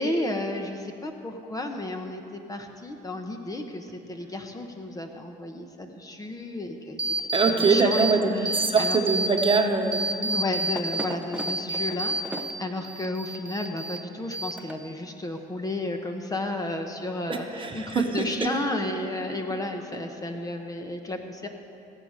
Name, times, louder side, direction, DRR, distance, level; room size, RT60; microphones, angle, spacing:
voice 1, 0.0-9.0 10.2-21.5, left 2 dB, 20° left, 4 dB, 1.1 m, -33 dB
sound 1, 7.0-8.1 8.4-9.6 9.9-12.5 12.8-14.0 14.3-14.9, right 2 dB, 5° right, 0.8 m, -29 dB
voice 2, 7.3-10.0 17.3-18.5, right 4 dB, 30° right, 3 dB, 1.2 m, -23 dB
16.5 x 8.3 x 6.5 m, 2.7 s
cardioid pair, 110°, 17 cm